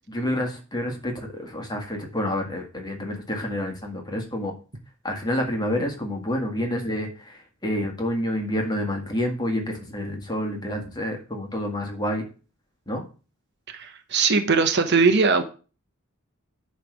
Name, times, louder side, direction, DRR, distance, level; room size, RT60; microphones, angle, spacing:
voice 1, 0.1-4.5 5.0-12.3 12.9-13.0, left 1 dB, 20° left, 2 dB, 1.7 m, -28 dB
voice 2, 13.7-15.4, right 4 dB, 55° right, 7 dB, 1.0 m, -20 dB
10.0 x 3.3 x 6.3 m, 0.35 s
head